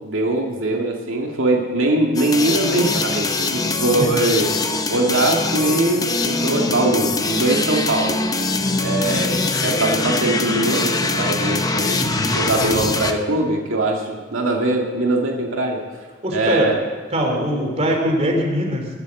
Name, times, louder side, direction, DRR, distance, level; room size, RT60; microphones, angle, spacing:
voice 1, 0.0-4.5 4.9-8.2 8.8-12.0 12.3-15.8 16.3-16.8, right 2 dB, 80° right, 1 dB, 2.0 m, -21 dB
sound 1, 2.1-13.1, left 3 dB, 20° left, 0.8 m, -22 dB
voice 2, 11.9-12.4 16.2-16.7 17.1-18.9, equal, 30° right, 1 dB, 3.0 m, -22 dB
21.0 x 7.6 x 7.7 m, 1.5 s
head